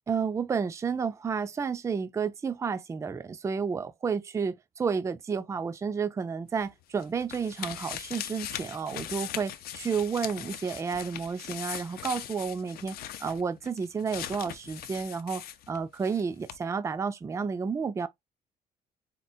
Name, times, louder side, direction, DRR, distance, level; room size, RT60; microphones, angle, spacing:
voice 1, 0.1-18.1, right 5 dB, 20° right, 0.3 m, -31 dB
sound 1, 6.6-16.2 16.5-16.6, left 11 dB, 70° left, 0.5 m, -40 dB
4.2 x 2.0 x 2.6 m
cardioid pair, 105°, 16 cm